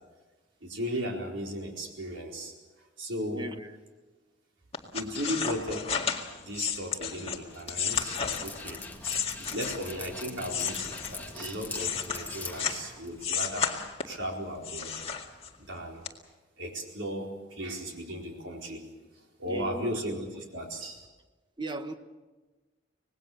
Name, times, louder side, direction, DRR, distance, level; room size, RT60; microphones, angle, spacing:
voice 1, 0.6-2.5 3.0-3.5 4.9-5.9 6.3-8.8 9.5-13.7 14.0-14.9 15.7-16.0 16.6-18.8 19.4-21.0, equal, 80° right, 0 dB, 4.4 m, -36 dB
voice 2, 3.3-3.7 19.5-19.9 21.6-21.9, right 1 dB, 25° right, 8 dB, 1.3 m, -36 dB
sound 1, 4.7-10.0 10.4-12.9 13.2-14.2 14.6-15.7 16.0-16.1, left 7 dB, 35° left, 2.0 m, -32 dB
Dog, 7.5-13.3, left 3 dB, 10° left, 1.9 m, -42 dB
25.5 x 19.5 x 6.8 m, 1.2 s
head